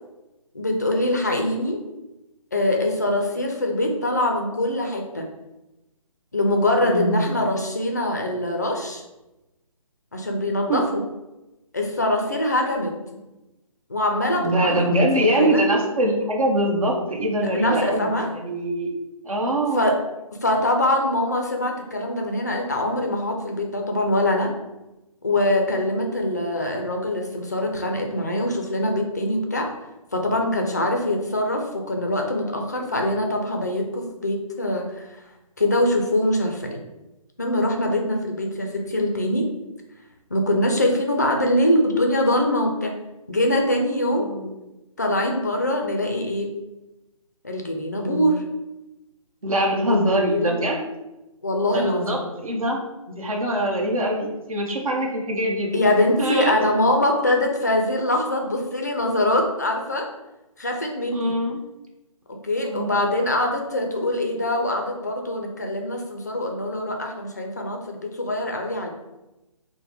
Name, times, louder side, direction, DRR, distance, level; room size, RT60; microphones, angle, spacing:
voice 1, 0.5-1.8 2.5-5.3 6.3-9.0 10.1-11.0 11.7-13.0 13.9-15.6 17.5-18.3 19.7-20.0 20.3-24.5 25.2-29.7 30.1-35.1 35.6-36.8 37.4-39.5 40.3-43.0 43.3-44.3 45.0-46.5 47.4-48.4 49.8-50.6 51.4-52.3 55.7-60.1 60.6-61.4 62.3-68.9, left 1 dB, 30° left, 2 dB, 0.4 m, -23 dB
voice 2, 6.8-7.3 10.7-10.8 14.4-18.9 19.2-19.8 44.2-44.5 48.0-48.3 49.4-50.8 51.7-52.8 53.1-55.8 56.2-56.6 61.1-61.6 62.6-63.0, right 1 dB, 70° right, -1 dB, 1.0 m, -23 dB
4.7 x 2.1 x 3.4 m, 0.99 s
hypercardioid pair, 175°, 18 cm